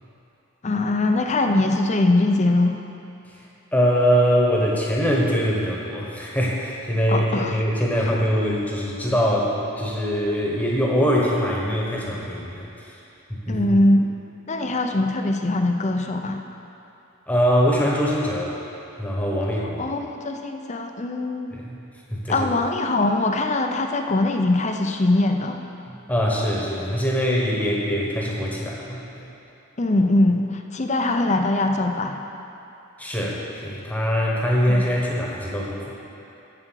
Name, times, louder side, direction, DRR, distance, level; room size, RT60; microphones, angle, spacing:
voice 1, 0.6-2.8 7.1-7.6 8.1-8.2 13.5-14.1 14.5-16.4 19.8-21.6 22.3-25.6 29.8-32.2 34.7-34.8, left 2 dB, 35° left, 4 dB, 0.6 m, -22 dB
voice 2, 3.7-13.0 13.3-13.8 17.3-18.6 19.0-19.9 21.5-21.8 22.1-22.5 25.9-29.3 33.0-35.9, equal, 5° left, -3 dB, 1.2 m, -23 dB
7.8 x 7.5 x 6.3 m, 2.8 s
head